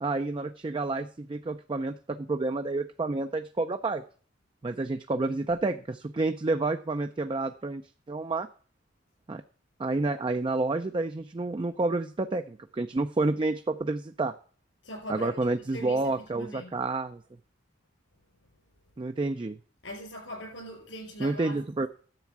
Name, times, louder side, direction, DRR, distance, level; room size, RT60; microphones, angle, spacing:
voice 1, 0.0-4.0 4.6-7.8 8.1-8.5 9.3-9.4 9.8-14.3 15.1-17.2 19.0-19.6 21.2-21.9, right 2 dB, 25° right, 0.4 m, -29 dB
voice 2, 14.8-15.3 15.7-16.7 19.8-21.6, equal, 80° left, 5.5 m, -41 dB
10.5 x 7.5 x 5.9 m
head